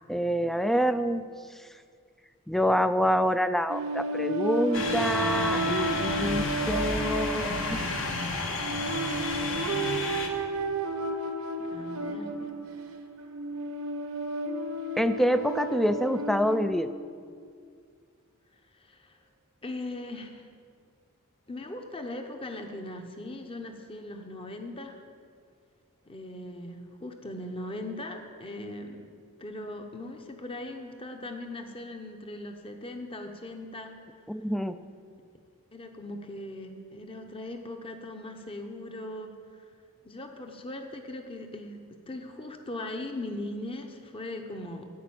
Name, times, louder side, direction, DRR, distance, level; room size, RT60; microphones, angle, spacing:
voice 1, 0.1-1.2 2.5-7.8 15.0-16.9 34.3-34.8, equal, ahead, 11 dB, 0.3 m, -26 dB
sound 1, 3.7-16.6, right 2 dB, 70° right, 0.9 m, -32 dB
sound 2, 4.7-10.3, left 3 dB, 60° left, 1.3 m, -31 dB
voice 2, 11.6-12.6 18.7-19.2 19.6-20.5 21.5-25.0 26.0-29.0 29.4-34.0 35.7-39.6 40.0-41.8 42.1-44.9, left 1 dB, 25° left, 4 dB, 0.9 m, -39 dB
15.0 x 5.1 x 8.7 m, 2.1 s
head